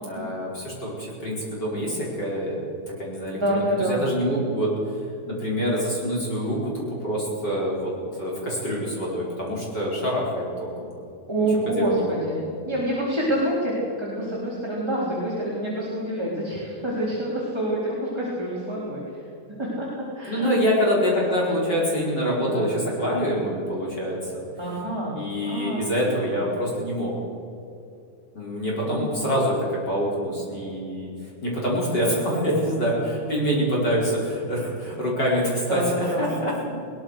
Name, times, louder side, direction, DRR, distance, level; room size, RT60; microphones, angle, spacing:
voice 1, 0.0-2.6 3.0-3.6 3.9-4.7 5.3-10.9 11.7-12.2 20.3-24.4 25.1-27.1 28.3-31.1 31.4-35.8 36.2-36.5, equal, 30° left, -4 dB, 5.1 m, -26 dB
voice 2, 3.3-4.0 11.3-12.4 12.7-13.7 14.0-19.3 19.6-19.9 20.1-20.5 22.5-22.8 24.6-26.6 28.8-29.2 32.3-33.5 35.7-36.3, right 1 dB, 10° right, -7 dB, 3.9 m, -27 dB
21.5 x 19.5 x 6.5 m, 2.7 s
omnidirectional pair, 3.6 m